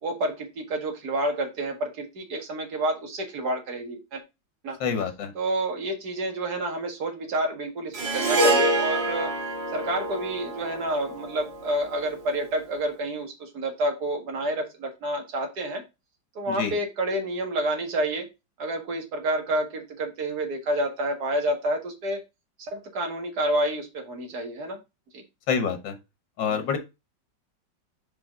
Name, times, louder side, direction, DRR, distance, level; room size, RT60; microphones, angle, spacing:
voice 1, 0.0-4.2 4.6-4.8 5.4-9.3 9.7-15.8 16.4-18.3 18.6-22.2 22.6-24.8 25.1-25.2 26.5-26.6, right 1 dB, 60° right, 3 dB, 2.3 m, -29 dB
voice 2, 4.8-5.3 16.5-16.7 25.5-26.0 26.4-26.8, left 6 dB, 80° left, 8 dB, 1.9 m, -27 dB
Harp, 7.9-12.4, right 1 dB, 75° right, 2.8 m, -27 dB
5.5 x 4.9 x 3.7 m, 0.24 s
omnidirectional pair, 2.0 m